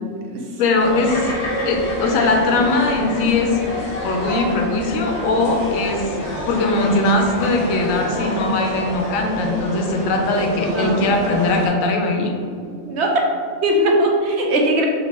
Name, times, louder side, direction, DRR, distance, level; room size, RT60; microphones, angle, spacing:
voice 1, 0.6-1.3 1.6-3.6 4.0-6.1 6.5-12.3, left 2 dB, 90° left, 2 dB, 1.1 m, -20 dB
sound 1, 0.8-11.7, left 1 dB, 65° left, 1.3 m, -28 dB
Bird vocalization bird call bird song, 1.1-5.4, left 1 dB, 50° left, 1.3 m, -34 dB
voice 2, 10.7-11.1 12.8-13.1 13.6-14.9, right 1 dB, 65° right, 0 dB, 0.8 m, -19 dB
4.3 x 3.4 x 2.9 m, 2.2 s
omnidirectional pair, 1.4 m